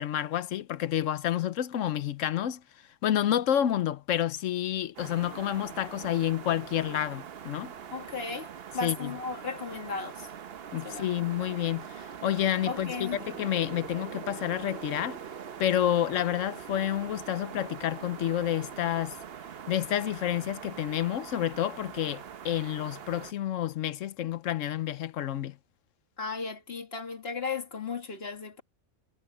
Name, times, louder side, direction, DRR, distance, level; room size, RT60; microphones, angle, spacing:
voice 1, 0.0-2.6 3.0-7.7 8.8-9.1 10.7-15.2 15.6-19.2 19.7-25.6, left 11 dB, 85° left, 1.1 m, -29 dB
sound 1, 5.0-23.3, right 8 dB, 55° right, 1.0 m, -43 dB
voice 2, 7.9-10.3 10.8-11.3 12.7-13.2 26.2-28.6, left 4 dB, 50° left, 2.1 m, -35 dB
omnidirectional pair, 1.3 m